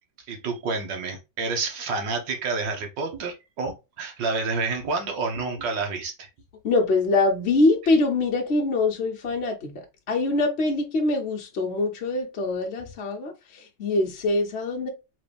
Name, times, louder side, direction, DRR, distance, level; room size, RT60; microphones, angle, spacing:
voice 1, 0.3-6.3, right 4 dB, 90° right, 1.9 m, -29 dB
voice 2, 6.6-14.9, left 2 dB, 45° left, 1.0 m, -24 dB
4.0 x 3.4 x 3.4 m
omnidirectional pair, 1.9 m